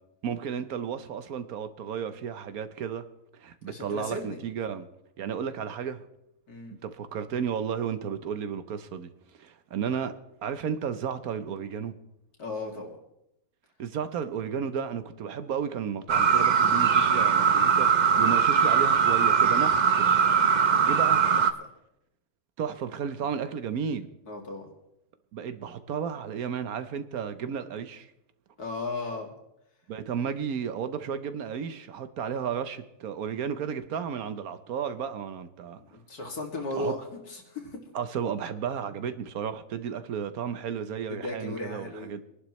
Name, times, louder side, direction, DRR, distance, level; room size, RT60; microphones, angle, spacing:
voice 1, 0.2-3.1 3.3-4.9 5.2-6.0 6.8-9.1 9.4-10.1 10.4-11.9 13.8-20.1 20.6-21.2 22.6-24.1 25.3-28.1 29.9-35.8 36.7-36.9 37.9-42.2, right 7 dB, 75° right, 1.3 m, -33 dB
voice 2, 3.7-4.4 6.5-6.8 12.4-12.9 21.4-21.5 24.3-24.7 28.6-29.4 35.8-37.8 41.1-42.2, left 2 dB, 80° left, 2.9 m, -36 dB
sound 1, 16.1-21.5, right 6 dB, 45° right, 0.6 m, -21 dB
23.0 x 11.5 x 3.1 m
omnidirectional pair, 1.6 m